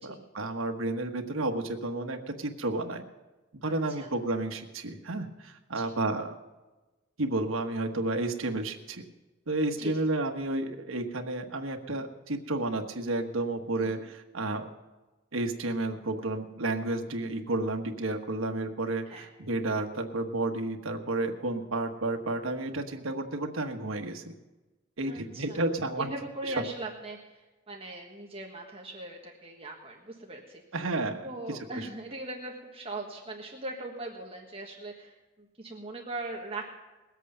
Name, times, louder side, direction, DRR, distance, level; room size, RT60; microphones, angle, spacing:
voice 1, 0.0-3.0 3.6-6.4 7.2-9.0 9.5-14.7 15.3-24.3 25.0-26.1 30.7-31.6, right 2 dB, 85° right, 4 dB, 1.3 m, -31 dB
voice 2, 3.6-4.1 5.7-5.9 9.8-10.1 13.8-14.0 19.1-19.3 25.1-25.6 26.0-30.6 31.2-36.6, right 2 dB, 30° right, 0 dB, 1.5 m, -40 dB
20.5 x 8.2 x 5.5 m, 1.1 s
head